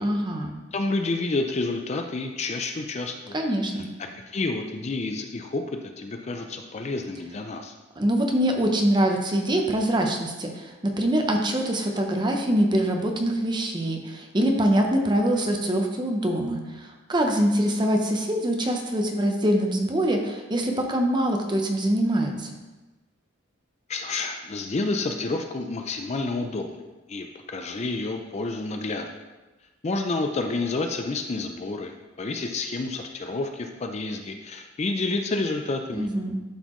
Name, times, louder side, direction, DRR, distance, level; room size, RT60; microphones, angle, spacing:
voice 1, 0.0-0.6 3.3-3.9 8.0-22.5 35.9-36.4, right 1 dB, 20° right, 2 dB, 0.7 m, -24 dB
voice 2, 0.7-3.4 4.2-5.6 6.0-7.7 23.9-26.8 27.1-29.1 29.8-31.9 32.2-36.1, left 3 dB, 30° left, 5 dB, 0.4 m, -29 dB
11.5 x 4.1 x 3.0 m, 1.1 s
head